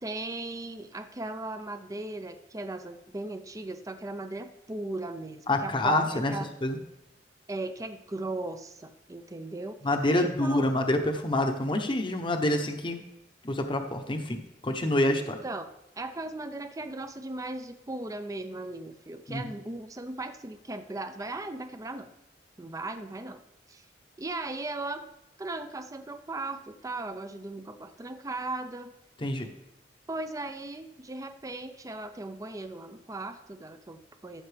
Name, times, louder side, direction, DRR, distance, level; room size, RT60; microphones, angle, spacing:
voice 1, 0.0-6.5 7.5-9.8 10.1-10.7 15.2-15.7 16.0-22.1 22.6-23.4 23.7-23.9 24.2-25.1 25.4-28.9 30.1-34.4, right 2 dB, 20° right, 8 dB, 0.5 m, -37 dB
voice 2, 5.5-6.3 6.6-6.8 9.8-13.0 13.4-15.4 19.3-19.4 29.2-29.5, left 1 dB, 30° left, 5 dB, 0.9 m, -27 dB
14.0 x 7.0 x 3.4 m, 0.89 s
head